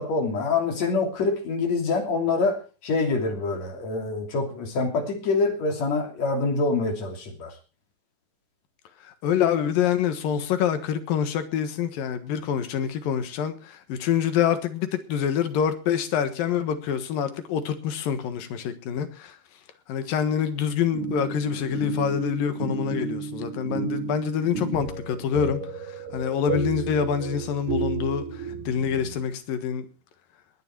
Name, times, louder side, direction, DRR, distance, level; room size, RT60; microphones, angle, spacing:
voice 1, 0.0-7.5, left 3 dB, 55° left, 4.2 m, -25 dB
voice 2, 9.0-19.4 19.9-29.9, left 8 dB, 90° left, 3.2 m, -26 dB
sound 1, 20.9-29.2, right 4 dB, 65° right, 7.1 m, -32 dB
20.0 x 10.0 x 4.6 m
omnidirectional pair, 3.9 m